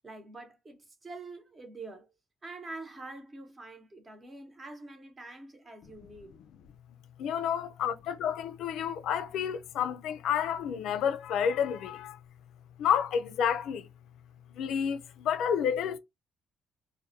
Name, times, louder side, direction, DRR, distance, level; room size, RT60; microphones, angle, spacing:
voice 1, 0.0-2.1 2.4-6.4 7.6-7.9, right 2 dB, 30° right, 0.8 m, -46 dB
voice 2, 7.2-12.2 12.8-13.9 14.5-16.0, left 8 dB, 85° left, 0.3 m, -30 dB
2.3 x 2.1 x 2.7 m
cardioid pair, 90°, 0 cm